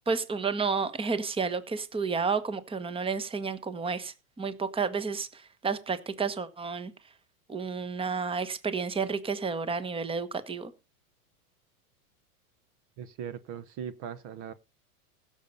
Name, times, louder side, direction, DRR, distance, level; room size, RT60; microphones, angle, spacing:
voice 1, 0.1-6.9 7.5-10.7, right 5 dB, 10° right, 1.2 m, -31 dB
voice 2, 13.0-14.5, right 8 dB, 45° right, 1.0 m, -39 dB
16.0 x 7.1 x 5.4 m
hypercardioid pair, 120°, 45 cm